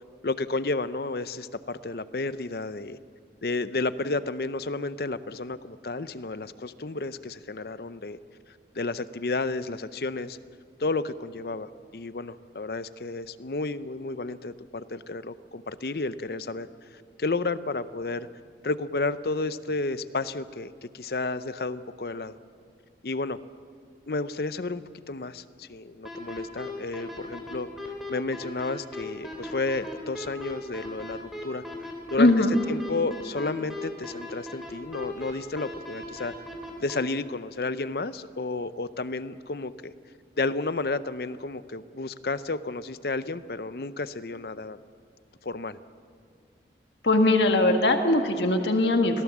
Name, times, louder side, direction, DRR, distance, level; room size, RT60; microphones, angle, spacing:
voice 1, 0.2-3.0 3.4-8.2 8.7-10.4 10.8-16.7 17.2-18.3 18.6-22.3 23.0-23.4 24.1-27.7 28.1-31.6 32.1-36.3 36.8-39.9 40.4-44.8 45.4-45.8, left 3 dB, 60° left, 14 dB, 0.7 m, -31 dB
sound 1, 26.1-37.0, left 1 dB, ahead, 3.5 m, -38 dB
voice 2, 32.2-32.6 47.0-49.2, left 2 dB, 80° left, 5 dB, 1.6 m, -21 dB
26.0 x 17.0 x 7.3 m, 2.1 s
head